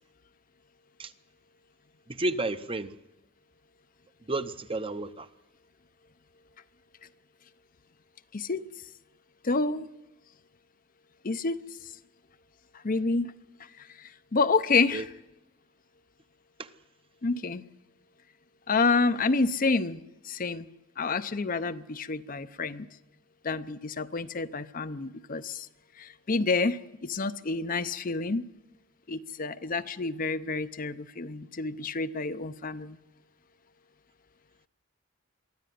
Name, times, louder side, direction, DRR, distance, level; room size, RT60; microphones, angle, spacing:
voice 1, 2.1-2.9 4.3-5.3 14.9-15.0 16.6-16.7, right 2 dB, 25° right, 0.8 m, -31 dB
voice 2, 8.3-8.6 9.4-9.9 11.2-11.6 12.7-13.3 13.6-15.1 17.2-17.6 18.7-20.7 21.0-22.9 23.4-25.7 26.0-28.5 29.1-33.0, left 4 dB, 45° left, 0.7 m, -29 dB
23.5 x 14.0 x 9.4 m
head